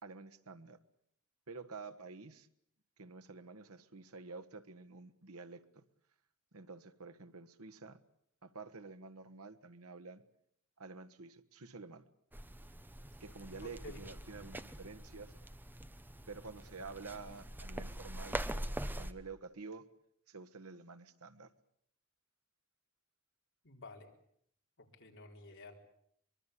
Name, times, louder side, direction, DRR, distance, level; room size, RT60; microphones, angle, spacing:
voice 1, 0.0-0.8 1.5-2.5 3.0-5.8 6.5-8.0 8.4-10.2 10.8-12.0 13.2-15.3 16.3-18.4 19.0-19.9 20.3-21.5, right 4 dB, 90° right, 9 dB, 1.4 m, -49 dB
sound 1, 12.3-19.1, right 1 dB, 10° right, 1.0 m, -44 dB
voice 2, 13.6-14.0 23.6-24.1 24.8-25.7, left 2 dB, 60° left, 2 dB, 4.3 m, -52 dB
24.0 x 23.0 x 8.5 m, 0.69 s
head